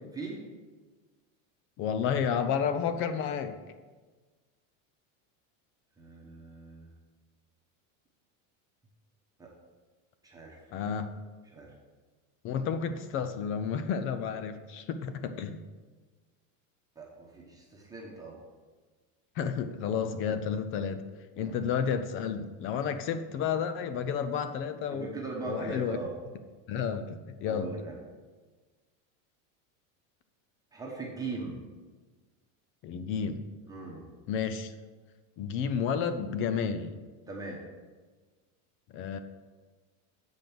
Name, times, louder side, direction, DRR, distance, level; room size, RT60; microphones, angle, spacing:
voice 1, 1.8-3.6 10.7-11.1 12.4-15.6 19.4-21.0 21.4-25.1 25.4-26.0 26.7-27.7 32.8-33.5 34.3-34.7 35.4-37.0 38.9-39.2, left 7 dB, 35° left, 11 dB, 0.4 m, -31 dB
voice 2, 6.0-6.9 9.4-9.5 10.2-10.6 11.4-11.7 17.0-18.4 21.4-21.6 24.9-26.1 27.5-28.0 30.7-31.6 33.7-34.0 37.3-37.6, right 2 dB, 10° right, -3 dB, 1.1 m, -39 dB
7.7 x 5.3 x 6.0 m, 1.3 s
supercardioid pair, 155°, 40 cm